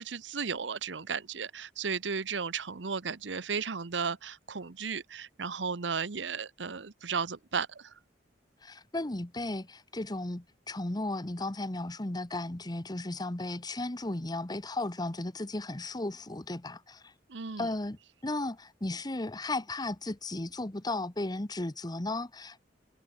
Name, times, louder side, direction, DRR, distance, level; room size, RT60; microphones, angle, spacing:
voice 1, 0.0-7.9 17.3-17.7, right 5 dB, 80° right, 0.9 m, -34 dB
voice 2, 8.6-17.0 17.6-18.0 18.2-22.6, left 2 dB, 20° left, 1.1 m, -35 dB
head